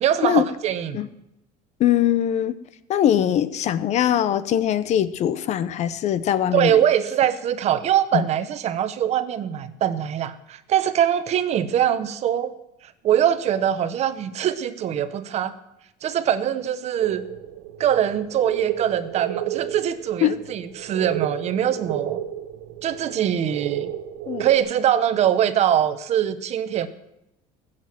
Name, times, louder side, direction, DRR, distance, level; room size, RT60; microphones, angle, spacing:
voice 1, 0.0-1.1 6.5-12.5 12.8-15.5 16.0-17.2 17.8-22.2 22.8-23.9 24.4-26.9, right 10 dB, 40° right, 12 dB, 1.0 m, -22 dB
voice 2, 1.8-2.6 2.9-6.8 8.1-8.2 20.2-20.3 24.3-24.5, left 10 dB, 45° left, 15 dB, 0.8 m, -21 dB
sound 1, 17.0-24.6, right 12 dB, 75° right, 1.2 m, -32 dB
20.0 x 7.7 x 7.7 m, 0.85 s
cardioid pair, 135°, 17 cm